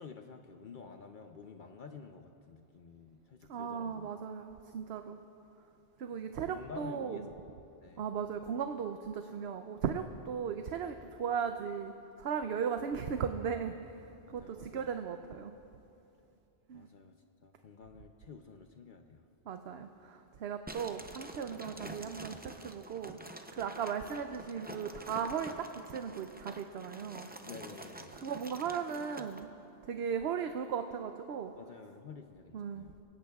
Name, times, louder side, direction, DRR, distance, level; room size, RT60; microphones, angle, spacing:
voice 1, 0.0-4.1 4.3-4.4 6.2-8.1 14.3-14.9 16.7-17.2 17.4-19.2 27.5-28.2 31.6-32.9, left 5 dB, 55° left, 5 dB, 0.8 m, -50 dB
voice 2, 3.5-5.2 6.0-7.2 8.0-11.9 12.2-13.7 14.3-15.5 16.7-16.9 19.5-22.4 22.6-23.2 23.5-27.3 28.2-29.5 29.9-31.5 32.5-33.0, right 7 dB, 85° right, 7 dB, 0.9 m, -37 dB
sound 1, 20.7-29.4, right 1 dB, 10° right, 0.5 m, -48 dB
24.5 x 16.5 x 2.3 m, 2.8 s
omnidirectional pair, 1.0 m